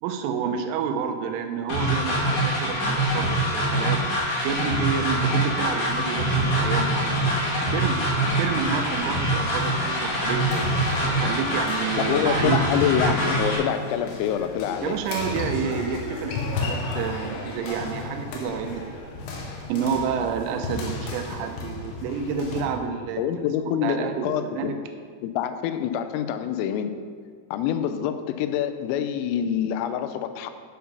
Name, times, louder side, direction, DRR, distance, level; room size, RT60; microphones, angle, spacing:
voice 1, 0.0-4.0 4.4-7.1 7.5-10.6 11.0-12.6 14.8-18.8 19.7-23.5 23.8-24.8, right 7 dB, 80° right, 6 dB, 3.2 m, -29 dB
sound 1, 1.7-13.6, right 1 dB, 55° left, 3.2 m, -24 dB
sound 2, 8.4-22.6, left 3 dB, 70° left, 2.6 m, -35 dB
voice 2, 12.1-15.0 23.2-24.7 25.2-26.9 27.5-30.5, left 9 dB, 90° left, 9 dB, 3.3 m, -26 dB
9.6 x 5.8 x 5.4 m, 2.1 s
omnidirectional pair, 5.8 m